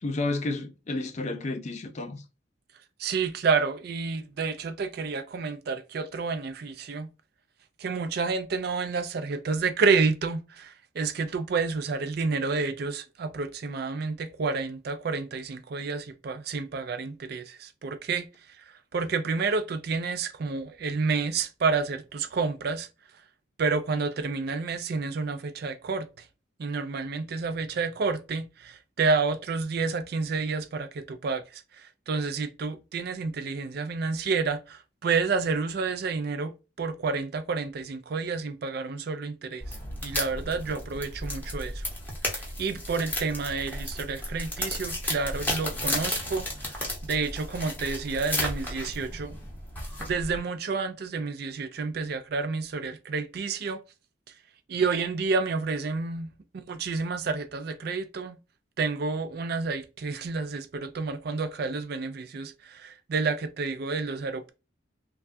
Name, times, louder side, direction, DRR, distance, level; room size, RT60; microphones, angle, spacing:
voice 1, 0.0-2.2, left 2 dB, 35° left, 0.4 m, -31 dB
voice 2, 3.0-7.1 7.8-22.9 23.6-26.3 26.6-36.5 36.8-41.8 42.2-49.4 50.0-53.8 54.7-58.4 58.8-64.5, right 4 dB, 50° right, 0.4 m, -30 dB
sound 1, 39.6-50.4, left 1 dB, 10° left, 0.7 m, -33 dB
3.2 x 2.3 x 2.5 m
head